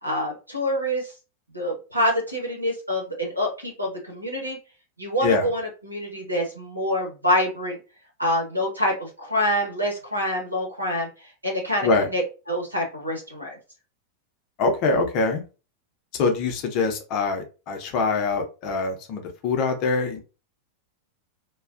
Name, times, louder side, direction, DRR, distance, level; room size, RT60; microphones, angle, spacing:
voice 1, 0.0-1.1 1.5-4.6 5.0-7.8 8.2-11.1 11.4-12.2 12.5-13.6, left 1 dB, 85° right, -1 dB, 1.0 m, -26 dB
voice 2, 14.6-15.4 16.1-20.2, left 3 dB, 40° left, 4 dB, 0.6 m, -24 dB
2.3 x 2.2 x 2.4 m, 0.32 s
figure-of-eight pair, 90°, 0 cm